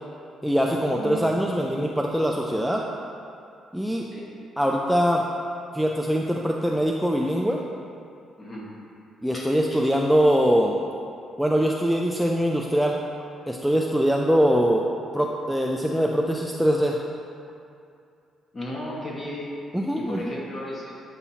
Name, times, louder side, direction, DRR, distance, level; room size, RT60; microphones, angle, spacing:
voice 1, 0.4-2.8 3.7-4.1 4.6-5.2 5.7-7.6 9.2-10.8 11.4-13.0 13.5-14.9 15.1-17.0 19.7-20.3, equal, ahead, -1 dB, 0.4 m, -22 dB
voice 2, 0.9-1.3 4.1-4.2 8.4-8.6 9.3-9.8 18.5-19.6 19.9-20.9, left 1 dB, 30° left, -4 dB, 1.4 m, -34 dB
8.0 x 4.2 x 2.8 m, 2.5 s
cardioid pair, 90°, 0 cm